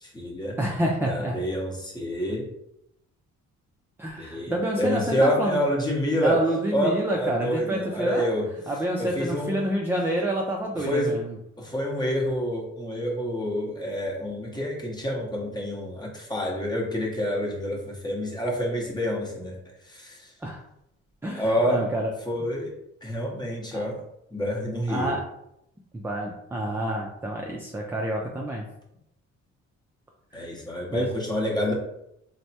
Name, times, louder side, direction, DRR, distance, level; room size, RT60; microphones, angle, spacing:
voice 1, 0.0-0.6 1.0-2.5 4.2-6.4 6.7-8.5 9.0-9.6 10.8-11.1 11.6-19.6 19.8-20.3 21.3-21.8 22.3-22.7 23.0-24.0 24.3-25.1 30.3-31.7, equal, 15° left, -2 dB, 0.8 m, -28 dB
voice 2, 0.6-1.4 4.0-5.6 6.2-8.3 8.7-11.3 20.4-20.6 21.2-22.1 23.7-23.8 24.9-25.2 25.9-28.6 30.9-31.1, right 1 dB, 10° right, -1 dB, 0.3 m, -28 dB
3.2 x 2.0 x 2.7 m, 0.81 s
cardioid pair, 90°, 30 cm